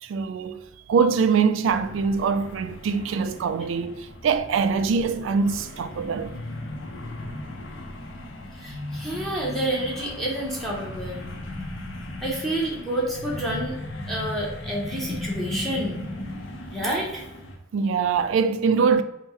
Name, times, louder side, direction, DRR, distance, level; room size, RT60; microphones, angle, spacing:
voice 1, 0.0-6.4 17.7-19.0, right 5 dB, 90° right, 0.3 m, -23 dB
sound 1, 1.7-17.6, left 1 dB, 80° left, 0.6 m, -37 dB
voice 2, 8.5-11.2 12.2-13.8 14.1-16.0 16.7-17.2, right 1 dB, ahead, 0.7 m, -29 dB
4.4 x 2.1 x 3.5 m
head